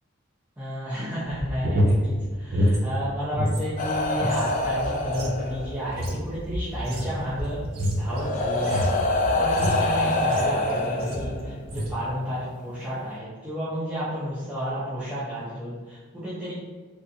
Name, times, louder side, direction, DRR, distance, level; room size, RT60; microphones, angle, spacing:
voice 1, 0.6-7.6 8.0-16.5, equal, 5° right, -12 dB, 0.6 m, -32 dB
sound 1, 1.3-3.6 3.9-10.6 11.0-11.3 11.6-12.0, equal, 50° right, 0.5 m, -27 dB
sound 2, 3.8-5.9 7.2-7.4 8.1-11.7 12.8-12.9, left 2 dB, 40° left, 0.3 m, -26 dB
3.4 x 2.6 x 2.7 m, 1.4 s
head